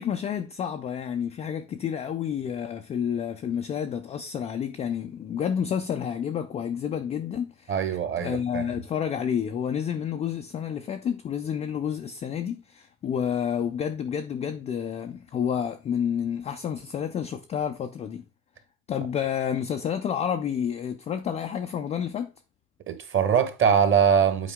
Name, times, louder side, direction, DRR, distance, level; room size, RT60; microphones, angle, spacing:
voice 1, 0.0-7.8 8.2-18.2 18.9-22.3, left 8 dB, 15° left, 0.3 m, -30 dB
voice 2, 7.7-8.6 22.9-24.5, right 7 dB, 30° right, 1.3 m, -22 dB
8.3 x 4.5 x 3.5 m
supercardioid pair, 110°, 42 cm